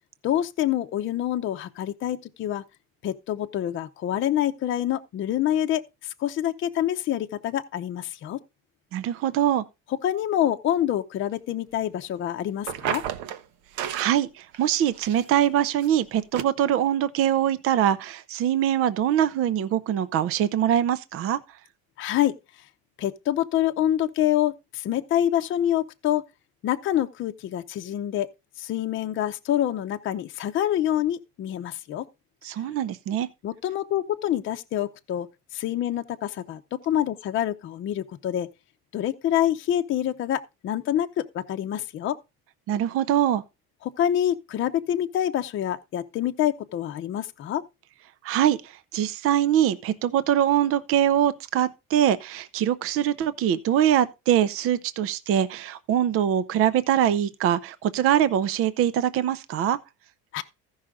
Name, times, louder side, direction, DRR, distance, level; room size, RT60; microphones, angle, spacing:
voice 1, 0.2-2.6 3.0-8.4 9.9-13.0 22.0-22.7 23.0-26.2 26.6-28.3 28.6-32.0 33.4-35.3 35.5-38.5 38.9-42.1 43.8-47.6 60.3-60.4, left 11 dB, 40° left, 0.7 m, -26 dB
voice 2, 8.9-9.6 13.9-21.4 32.4-33.3 42.7-43.4 48.2-59.8, right 10 dB, 50° right, 0.6 m, -23 dB
sound 1, 12.6-13.4 13.8-14.2 14.5-15.4 15.8-15.9 16.3-16.4, right 10 dB, 75° right, 1.0 m, -31 dB
15.0 x 5.6 x 3.6 m
cardioid pair, 140°, 29 cm